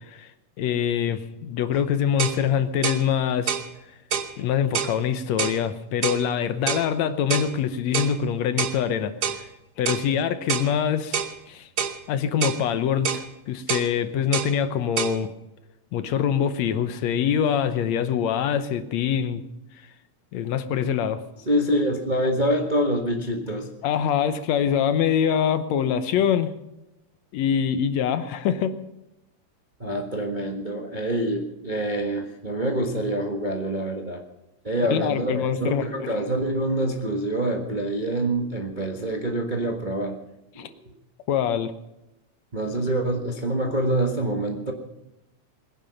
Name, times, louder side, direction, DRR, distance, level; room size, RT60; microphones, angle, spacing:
voice 1, 0.6-3.6 4.4-9.1 9.8-11.2 11.5-11.7 12.1-15.3 15.9-19.4 20.3-21.2 23.8-26.6 27.3-28.7 34.9-35.8 40.6-40.7 41.3-41.7, left 8 dB, 70° left, 11 dB, 2.1 m, -24 dB
sound 1, 1.8-1.9 2.2-2.4 2.8-3.0 3.5-3.7 4.1-4.3 4.7-5.0 5.4-5.6 6.0-6.2 6.7-6.9 7.3-7.5 7.9-8.2 8.6-8.8 9.2-9.4 9.9-10.1 10.5-10.7 11.1-11.3 11.8-12.0 12.4-12.6 13.0-13.3 13.7-13.9 14.3-14.5 15.0-15.2, right 7 dB, 80° right, 0.8 m, -27 dB
voice 2, 21.4-23.7 29.8-34.2 34.6-40.2 40.5-40.9 42.5-44.7, right 1 dB, 30° right, 2 dB, 0.8 m, -26 dB
22.0 x 10.5 x 5.7 m, 0.92 s
omnidirectional pair, 3.4 m